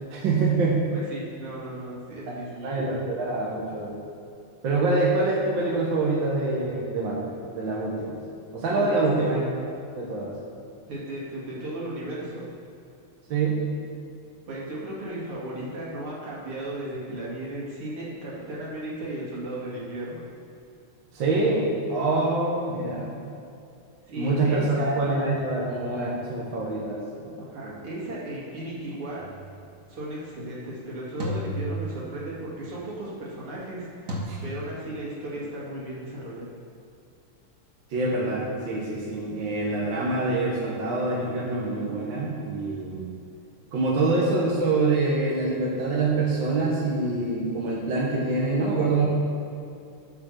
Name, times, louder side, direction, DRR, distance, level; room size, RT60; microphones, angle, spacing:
voice 1, 0.1-0.8 2.6-3.9 4.6-8.1 8.5-9.4 9.9-10.3 13.3-13.6 21.1-23.1 24.2-27.4 27.6-27.7 34.3-34.4 37.9-43.1 43.7-49.1, right 3 dB, 65° right, -3 dB, 2.0 m, -25 dB
voice 2, 0.9-2.7 8.7-9.0 10.9-12.4 14.5-20.2 24.0-24.9 27.4-29.2 29.9-36.5, right 1 dB, 85° right, -6 dB, 3.1 m, -35 dB
sound 1, 29.2-29.6 31.2-32.4 34.1-34.2, equal, 40° right, 1.6 m, -33 dB
12.5 x 5.1 x 6.6 m, 2.6 s
omnidirectional pair, 2.3 m